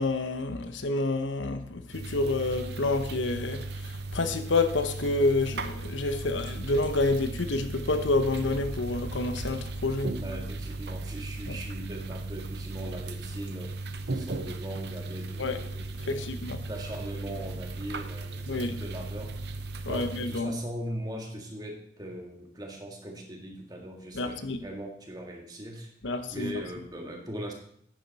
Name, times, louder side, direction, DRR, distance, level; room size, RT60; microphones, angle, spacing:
voice 1, 0.0-10.2 11.5-11.6 15.4-15.6 16.1-16.7 18.5-18.8 19.8-20.5 24.1-24.6 26.0-26.5, left 2 dB, 80° left, 0.9 m, -28 dB
sound 1, 1.9-20.4, right 2 dB, 60° right, 0.8 m, -37 dB
voice 2, 10.2-13.7 14.1-16.2 16.7-19.4 19.8-25.9 26.3-27.5, right 1 dB, 20° right, 1.7 m, -40 dB
10.5 x 10.0 x 4.1 m
head